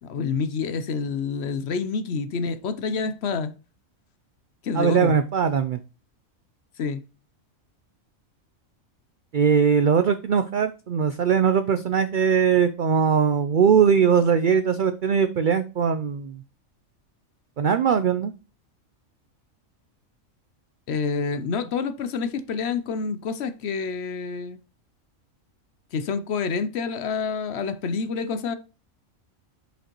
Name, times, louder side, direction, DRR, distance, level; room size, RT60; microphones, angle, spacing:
voice 1, 0.0-3.5 4.6-5.2 6.8-7.0 20.9-24.6 25.9-28.5, left 5 dB, 60° left, 0.8 m, -28 dB
voice 2, 4.7-5.8 9.3-16.4 17.6-18.3, right 7 dB, 80° right, 0.4 m, -20 dB
6.3 x 5.1 x 3.0 m
omnidirectional pair, 1.4 m